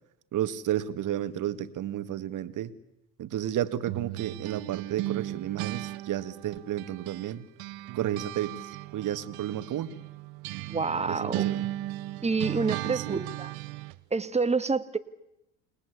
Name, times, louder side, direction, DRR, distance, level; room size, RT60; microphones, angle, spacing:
voice 1, 0.3-2.7 3.2-7.5 7.9-8.5 8.9-9.9 11.1-11.7 12.8-13.2, right 11 dB, 50° right, 11 dB, 2.0 m, -32 dB
sound 1, 3.9-7.3 7.6-14.0, right 16 dB, 65° right, 1.0 m, -36 dB
voice 2, 10.7-11.5 12.2-13.5 14.1-15.0, right 4 dB, 15° right, 12 dB, 1.7 m, -28 dB
29.0 x 20.5 x 8.3 m, 0.87 s
supercardioid pair, 90°, 39 cm